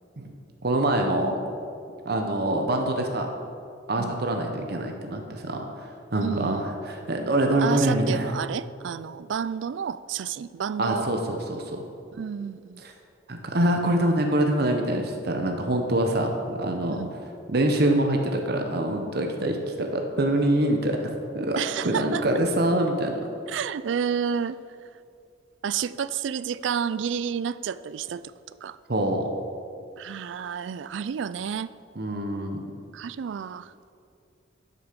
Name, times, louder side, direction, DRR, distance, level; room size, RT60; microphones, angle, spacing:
voice 1, 0.6-1.3 2.0-3.3 3.9-8.3 10.8-11.8 12.8-12.9 13.3-17.0 17.5-21.1 21.3-23.2 28.9-29.3 32.0-32.6, right 1 dB, 60° right, 3 dB, 1.0 m, -25 dB
voice 2, 6.2-6.7 7.6-11.1 12.1-12.8 16.9-17.2 21.6-22.3 23.5-24.6 25.6-28.2 28.6-28.8 30.0-31.7 32.9-33.7, right 7 dB, 80° right, 16 dB, 0.4 m, -30 dB
12.0 x 6.9 x 5.1 m, 2.5 s
head